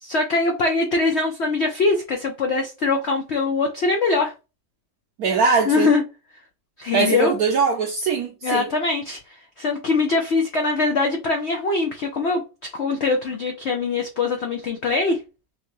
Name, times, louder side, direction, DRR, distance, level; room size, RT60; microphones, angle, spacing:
voice 1, 0.0-4.3 5.4-6.0 6.8-7.3 8.4-9.2 9.6-12.4 12.7-15.2, left 3 dB, 80° left, 0.6 m, -22 dB
voice 2, 5.2-5.9 6.9-8.7, right 5 dB, 70° right, 0.9 m, -21 dB
3.6 x 2.6 x 3.0 m
omnidirectional pair, 2.0 m